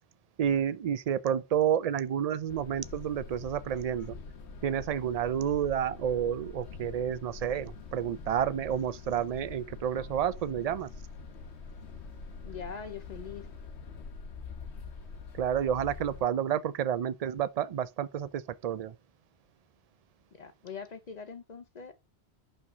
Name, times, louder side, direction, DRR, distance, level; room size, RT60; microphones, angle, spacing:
voice 1, 0.4-4.2 4.6-10.9 15.4-18.9, right 9 dB, 55° right, 0.4 m, -30 dB
sound 1, 2.5-16.2, left 4 dB, 90° left, 1.1 m, -45 dB
voice 2, 12.4-13.5 20.3-21.9, left 6 dB, 45° left, 0.6 m, -42 dB
8.4 x 3.3 x 5.9 m
omnidirectional pair, 1.1 m